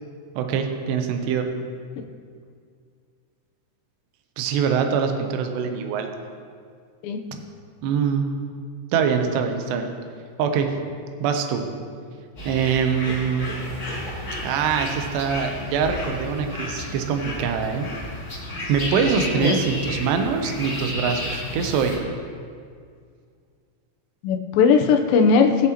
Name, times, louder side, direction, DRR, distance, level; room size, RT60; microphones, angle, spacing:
voice 1, 0.4-1.5 4.4-6.1 7.8-8.3 8.9-9.9 10.4-10.8 11.2-11.6 12.5-13.5 14.4-17.9 18.7-22.0, right 6 dB, 80° right, 5 dB, 2.8 m, -23 dB
voice 2, 7.0-7.4 19.4-19.6 24.2-25.7, left 5 dB, 85° left, 3 dB, 2.0 m, -18 dB
sound 1, 12.4-22.0, left 1 dB, 30° left, 2.1 m, -32 dB
19.0 x 7.3 x 3.0 m, 2.2 s
omnidirectional pair, 5.2 m